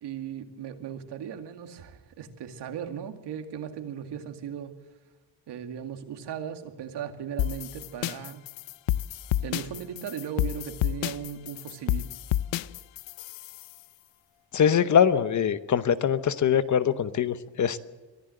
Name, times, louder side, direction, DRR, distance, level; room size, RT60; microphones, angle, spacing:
voice 1, 0.0-4.7 5.5-8.4 9.4-12.1, right 8 dB, 65° right, 7 dB, 2.3 m, -37 dB
sound 1, 7.4-13.7, left 13 dB, 80° left, 0.7 m, -30 dB
voice 2, 14.5-17.8, left 8 dB, 40° left, 13 dB, 0.9 m, -23 dB
24.0 x 15.5 x 7.9 m, 1.3 s
cardioid pair, 175°, 44 cm